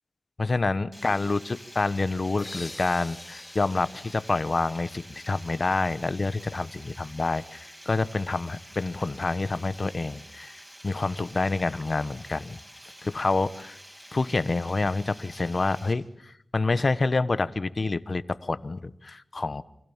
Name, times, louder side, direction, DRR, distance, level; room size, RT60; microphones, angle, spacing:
voice 1, 0.4-12.6 13.0-13.8 14.1-19.6, left 3 dB, 45° left, 15 dB, 1.1 m, -28 dB
Water, 0.9-15.9, equal, 10° right, 6.9 m, -48 dB
sound 1, 2.4-5.9, left 2 dB, 25° left, 3.4 m, -46 dB
29.0 x 25.5 x 7.3 m, 0.69 s
wide cardioid pair, 90°, 0 cm